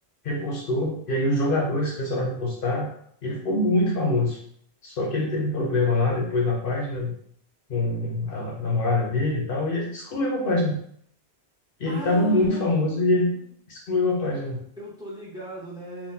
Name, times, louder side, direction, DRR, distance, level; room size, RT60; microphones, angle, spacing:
voice 1, 0.2-2.9 3.2-4.4 4.8-7.1 7.7-10.8 11.8-13.3 13.7-14.6, left 2 dB, 60° left, -2 dB, 0.8 m, -24 dB
voice 2, 11.8-13.3 14.8-16.1, left 2 dB, 5° right, -5 dB, 0.8 m, -37 dB
3.7 x 2.6 x 2.6 m, 0.65 s
omnidirectional pair, 1.1 m